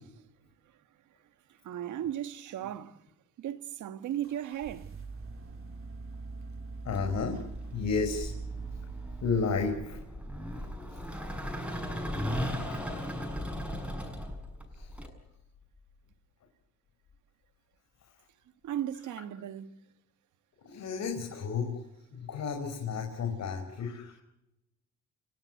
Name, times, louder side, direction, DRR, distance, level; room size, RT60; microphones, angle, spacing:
voice 1, 1.6-3.0 3.4-4.9 18.6-19.8, right 11 dB, 75° right, 1.7 m, -36 dB
sound 1, 4.2-10.1, right 4 dB, 45° right, 3.9 m, -42 dB
sound 2, 5.2-5.7 6.8-15.1, equal, 5° right, 6.8 m, -37 dB
voice 2, 6.9-7.4 7.7-8.3 9.2-10.0 10.6-10.7 11.1-11.5 12.4-13.1 14.7-14.9 20.6-21.8 22.1-24.1, left 5 dB, 65° left, 5.2 m, -33 dB
30.0 x 17.0 x 8.1 m
cardioid pair, 90°, 30 cm